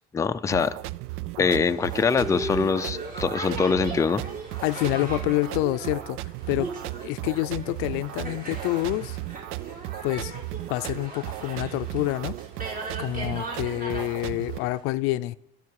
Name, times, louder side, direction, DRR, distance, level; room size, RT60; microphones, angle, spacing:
voice 1, 0.1-0.8 1.4-4.2, left 5 dB, 15° left, 0.5 m, -23 dB
sound 1, 0.5-14.6, right 18 dB, 75° right, 0.5 m, -36 dB
Boat Water vehicle, 1.6-14.8, right 2 dB, 40° right, 5.1 m, -38 dB
voice 2, 4.6-6.2 6.5-6.7 7.0-9.2 10.0-10.3 10.7-12.4 13.0-15.4, left 18 dB, 85° left, 0.5 m, -27 dB
23.0 x 13.0 x 4.8 m
cardioid pair, 145°, 21 cm